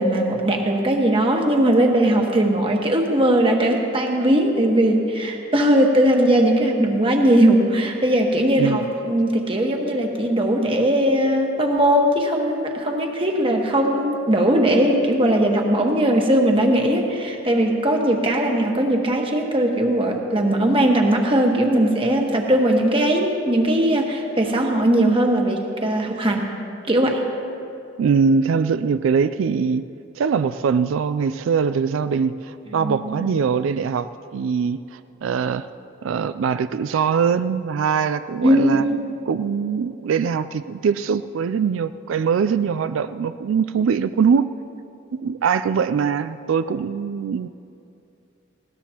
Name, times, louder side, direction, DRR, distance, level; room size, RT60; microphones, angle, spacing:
voice 1, 0.0-26.5 26.9-27.2 32.7-33.2 38.4-38.9, right 1 dB, 25° right, 2 dB, 1.3 m, -19 dB
voice 2, 28.0-29.9 30.2-34.1 34.3-35.7 36.0-38.8 39.3-44.5 45.1-47.5, right 6 dB, 85° right, 12 dB, 0.3 m, -22 dB
20.0 x 17.5 x 2.9 m, 2.7 s
head